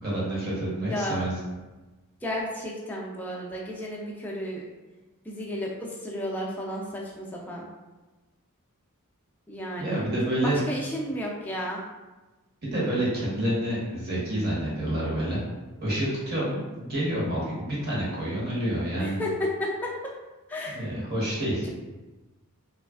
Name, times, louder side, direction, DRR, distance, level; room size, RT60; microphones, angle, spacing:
voice 1, 0.0-1.3 9.8-10.6 12.6-15.4 15.8-19.1 20.7-21.7, right 1 dB, 45° right, -7 dB, 1.0 m, -28 dB
voice 2, 0.9-1.2 2.2-4.6 5.2-7.7 9.5-10.0 10.4-11.8 19.0-20.1 20.5-20.8, equal, 5° left, -3 dB, 0.3 m, -32 dB
3.1 x 2.4 x 2.3 m, 1.2 s
head